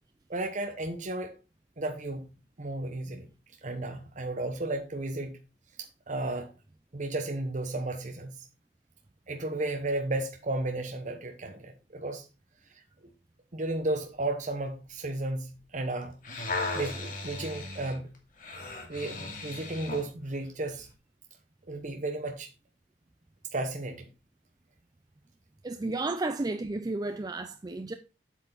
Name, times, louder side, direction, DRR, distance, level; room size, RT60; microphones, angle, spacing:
voice 1, 0.3-1.3 1.8-2.3 2.6-3.3 3.6-5.4 5.8-6.5 6.9-8.4 9.3-12.2 13.5-16.1 16.7-18.1 18.9-20.9 21.7-22.5 23.5-24.1, right 2 dB, 45° right, 1.0 m, -33 dB
sound 1, 16.0-20.1 20.7-20.9, left 3 dB, 50° left, 2.4 m, -36 dB
voice 2, 25.6-27.9, right 2 dB, 20° right, 0.5 m, -32 dB
8.1 x 8.1 x 3.9 m
head